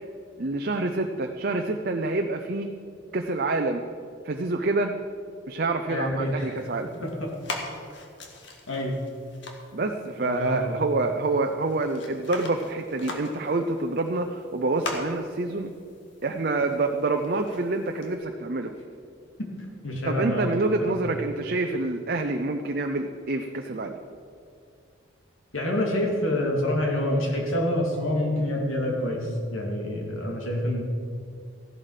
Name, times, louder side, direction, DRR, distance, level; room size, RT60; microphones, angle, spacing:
voice 1, 0.4-2.7 3.1-3.8 4.2-4.9 5.5-6.9 9.7-15.7 16.2-18.7 20.1-24.0, right 2 dB, 50° right, 4 dB, 0.6 m, -27 dB
voice 2, 5.9-6.6 7.0-7.3 8.7-9.0 10.2-10.8 19.8-20.4 20.8-20.9 25.5-30.8, left 1 dB, 90° left, 0 dB, 2.7 m, -27 dB
sound 1, 6.6-18.2, left 2 dB, 65° left, 1.7 m, -42 dB
14.5 x 11.5 x 5.0 m, 2.3 s
head